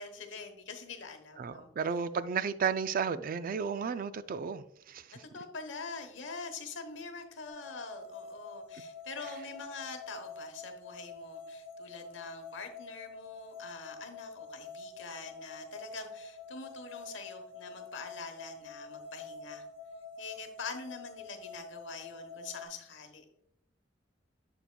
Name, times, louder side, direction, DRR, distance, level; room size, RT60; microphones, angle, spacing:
voice 1, 0.0-1.7 5.3-19.6 20.2-23.2, left 4 dB, 80° left, 1.1 m, -44 dB
voice 2, 1.4-5.2, right 6 dB, 50° right, 0.4 m, -33 dB
sound 1, 7.5-22.7, left 3 dB, 35° left, 1.6 m, -47 dB
7.6 x 6.9 x 2.2 m
head